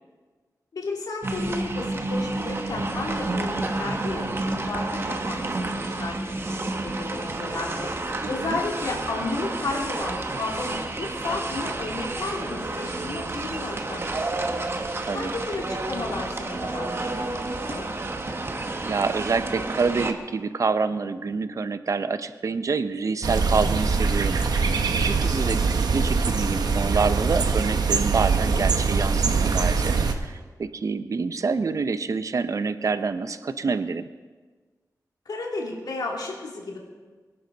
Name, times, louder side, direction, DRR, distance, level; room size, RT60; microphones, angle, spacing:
voice 1, 0.7-7.9 8.3-14.4 15.1-17.8 35.2-36.8, left 3 dB, 90° left, -1 dB, 2.8 m, -33 dB
sound 1, 1.2-20.1, right 2 dB, 40° right, 1.1 m, -30 dB
voice 2, 8.2-8.6 15.0-15.3 18.8-24.4 24.6-34.0, right 4 dB, 55° right, 11 dB, 0.7 m, -27 dB
sound 2, 23.2-30.1, right 4 dB, 90° right, 1.0 m, -23 dB
23.0 x 11.0 x 4.0 m, 1.4 s
wide cardioid pair, 135°, 7 cm